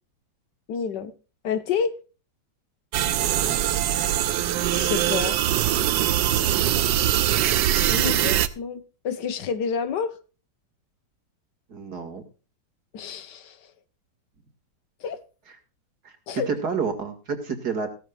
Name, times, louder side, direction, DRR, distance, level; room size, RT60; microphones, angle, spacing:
voice 1, 0.7-1.1 1.4-1.9 4.7-5.4 7.9-10.2 12.9-13.6 15.0-15.2 16.3-16.5, left 6 dB, 75° left, 1.7 m, -29 dB
sound 1, 2.9-8.5, right 12 dB, 90° right, 1.4 m, -22 dB
voice 2, 3.3-3.6 7.9-8.1 11.7-12.2 16.0-16.2 16.5-17.9, right 5 dB, 65° right, 2.8 m, -30 dB
17.0 x 13.0 x 2.4 m
omnidirectional pair, 1.9 m